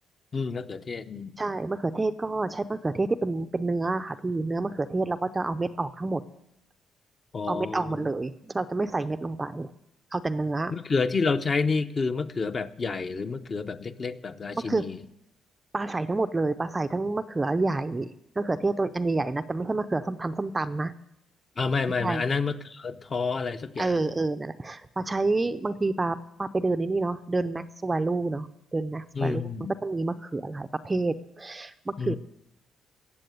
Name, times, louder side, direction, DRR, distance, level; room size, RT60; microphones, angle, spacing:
voice 1, 0.3-1.4 7.3-8.1 10.7-15.0 21.6-24.1 29.1-29.7 32.0-32.2, left 4 dB, 30° left, 9 dB, 0.7 m, -29 dB
voice 2, 1.4-6.2 7.5-9.7 10.1-10.7 14.6-14.8 15.7-18.1 18.4-20.9 22.0-22.2 23.8-29.5 29.8-32.2, right 3 dB, 15° right, 10 dB, 0.5 m, -28 dB
15.5 x 7.4 x 9.3 m, 0.81 s
cardioid pair, 135°, 0 cm